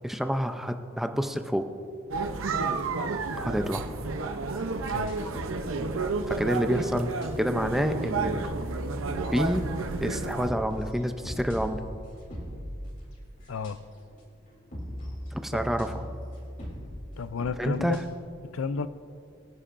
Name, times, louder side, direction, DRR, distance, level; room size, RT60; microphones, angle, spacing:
voice 1, 0.0-1.7 3.4-3.9 6.3-7.1 7.4-8.5 9.3-9.7 10.0-11.8 15.3-16.0 17.6-18.0, equal, ahead, 7 dB, 0.5 m, -28 dB
sound 1, 2.1-10.5, right 3 dB, 75° right, 0.7 m, -31 dB
sound 2, 4.4-6.8 7.2-7.3 7.7-7.8 8.0-8.3 9.3-14.2 14.4-18.2, equal, 40° left, 3.2 m, -41 dB
voice 2, 13.5-13.8 15.5-15.6 17.2-18.0 18.5-18.9, left 5 dB, 80° left, 14 dB, 0.5 m, -32 dB
24.5 x 9.9 x 2.6 m, 2.4 s
head